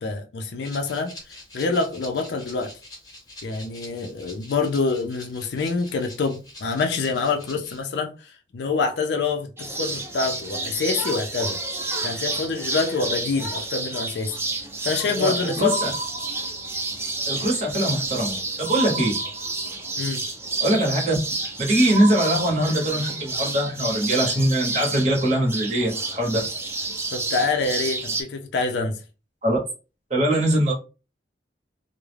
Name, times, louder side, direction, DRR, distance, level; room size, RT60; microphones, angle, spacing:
voice 1, 0.0-2.7 3.4-11.6 12.0-14.4 14.8-15.8 20.0-20.2 27.1-29.0, left 4 dB, 65° left, 0.4 m, -26 dB
Rattle (instrument), 0.6-7.8, left 1 dB, 20° left, 0.7 m, -45 dB
sound 1, 9.6-28.2, right 3 dB, 15° right, 0.4 m, -30 dB
voice 2, 15.1-15.9 17.3-19.2 20.6-21.2 21.6-26.4 29.4-29.6 30.1-30.7, right 1 dB, 40° right, 0.7 m, -22 dB
sound 2, 15.6-16.9 18.7-19.9 21.9-23.1, right 2 dB, 70° right, 0.7 m, -33 dB
2.3 x 2.0 x 3.1 m
head